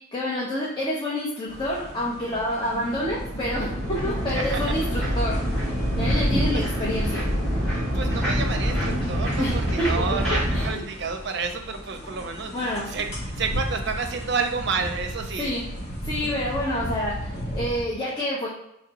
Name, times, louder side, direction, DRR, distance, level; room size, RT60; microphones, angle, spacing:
voice 1, 0.1-5.4 6.0-7.2 9.4-9.9 10.5-10.8 12.5-12.9 15.4-15.6 16.1-18.5, left 1 dB, 25° left, -6 dB, 0.7 m, -28 dB
sound 1, 1.5-17.8, equal, 55° left, 1.1 m, -34 dB
sound 2, 2.7-10.7, equal, ahead, 1.5 m, -26 dB
voice 2, 4.4-4.8 6.5-6.7 7.9-13.1 13.4-15.5, right 4 dB, 55° right, 5 dB, 0.6 m, -30 dB
4.9 x 3.2 x 2.8 m, 0.80 s
head